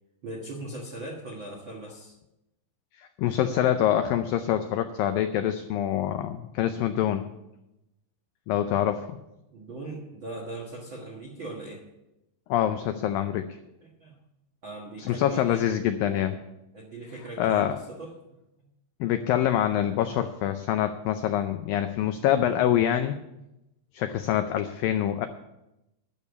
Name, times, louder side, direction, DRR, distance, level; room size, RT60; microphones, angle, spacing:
voice 1, 0.2-2.1 9.5-11.8 13.8-14.2 14.6-15.7 16.7-18.2, right 2 dB, 65° right, -2 dB, 1.2 m, -39 dB
voice 2, 3.0-7.3 8.5-9.2 12.5-13.5 15.0-16.4 17.4-17.8 19.0-23.2 23.9-25.3, left 11 dB, 85° left, 8 dB, 2.0 m, -25 dB
11.0 x 6.9 x 8.1 m, 0.91 s
omnidirectional pair, 4.8 m